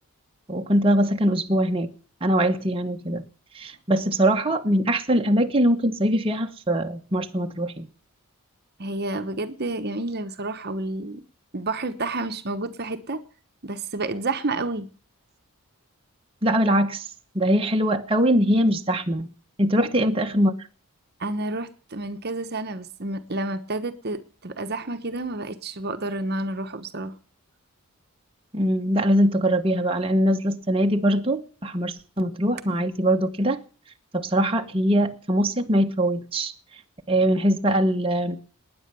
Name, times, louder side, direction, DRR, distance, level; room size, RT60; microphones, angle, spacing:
voice 1, 0.5-1.9 2.2-3.2 3.5-7.9 16.4-17.1 17.3-19.3 19.6-20.5 28.5-33.6 34.1-36.5 37.1-38.4, right 1 dB, 25° right, 1.1 m, -22 dB
voice 2, 8.8-11.2 11.5-13.2 13.6-14.9 19.8-19.9 21.2-27.1, right 2 dB, 45° right, 1.1 m, -30 dB
20.0 x 9.9 x 6.9 m
head